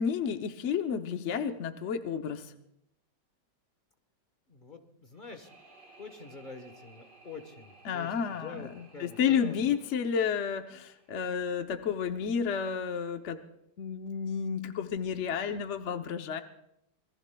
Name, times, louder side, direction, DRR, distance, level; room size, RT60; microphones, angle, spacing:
voice 1, 0.0-2.5 7.8-13.4 13.8-16.4, left 7 dB, 55° left, 6 dB, 0.9 m, -31 dB
voice 2, 4.5-5.5 6.0-9.6, left 4 dB, 30° left, 6 dB, 1.2 m, -46 dB
sound 1, 5.1-12.1, right 2 dB, 50° right, 3.8 m, -58 dB
26.5 x 21.5 x 2.3 m, 0.80 s
omnidirectional pair, 1.9 m